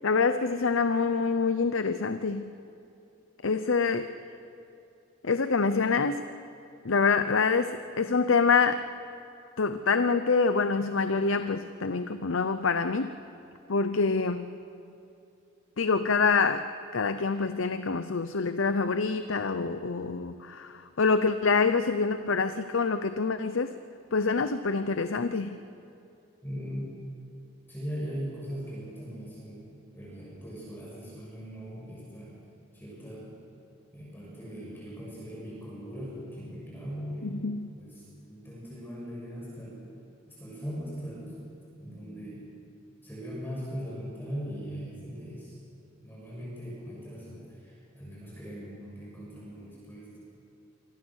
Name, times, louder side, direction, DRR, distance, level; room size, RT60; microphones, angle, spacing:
voice 1, 0.0-2.5 3.4-4.1 5.2-6.3 6.8-8.8 9.6-13.1 13.7-14.5 15.8-23.8 24.1-25.6 37.2-37.7, left 4 dB, 80° left, 11 dB, 0.8 m, -26 dB
voice 2, 26.4-26.9 27.7-29.6 29.9-32.3 32.7-33.3 33.9-37.4 37.8-39.8 40.3-41.3 41.8-42.4 43.0-45.6 46.0-50.2, equal, 10° left, -6 dB, 7.0 m, -39 dB
28.0 x 24.5 x 6.5 m, 2.7 s
head